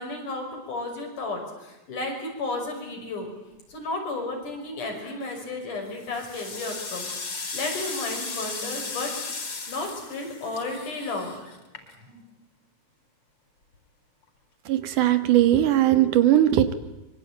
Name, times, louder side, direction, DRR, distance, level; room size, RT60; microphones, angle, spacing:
voice 1, 0.0-3.3 3.7-9.1 9.7-11.4, left 2 dB, 90° left, 2 dB, 7.3 m, -33 dB
sound 1, 5.1-5.5 5.9-12.2, left 3 dB, 45° left, 4.8 m, -36 dB
voice 2, 14.7-16.7, right 12 dB, 85° right, 10 dB, 3.2 m, -19 dB
25.0 x 24.0 x 8.9 m, 1.0 s
omnidirectional pair, 3.5 m